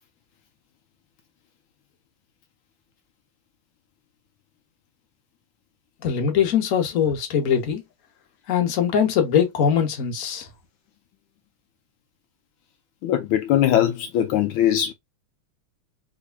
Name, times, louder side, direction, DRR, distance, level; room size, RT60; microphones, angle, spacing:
voice 1, 6.0-7.8 8.5-10.5, left 8 dB, 50° left, 1.1 m, -22 dB
voice 2, 13.0-14.9, left 11 dB, 75° left, 1.3 m, -21 dB
3.6 x 3.1 x 2.3 m
omnidirectional pair, 2.3 m